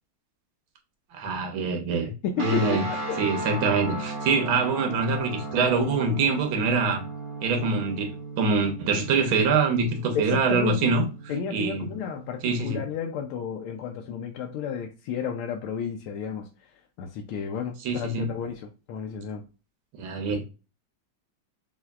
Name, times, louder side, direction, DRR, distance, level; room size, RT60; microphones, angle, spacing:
voice 1, 1.1-2.1 2.4-2.8 3.2-7.0 7.4-11.1 11.5-11.9 12.4-12.8 17.8-18.3 20.0-20.4, right 4 dB, 75° right, 1.7 m, -24 dB
voice 2, 2.2-3.2 10.1-11.0 11.3-16.7 17.0-19.4, left 6 dB, 85° left, 1.5 m, -32 dB
sound 1, 2.4-12.7, right 2 dB, 50° right, 1.9 m, -36 dB
5.6 x 2.6 x 2.3 m
omnidirectional pair, 2.3 m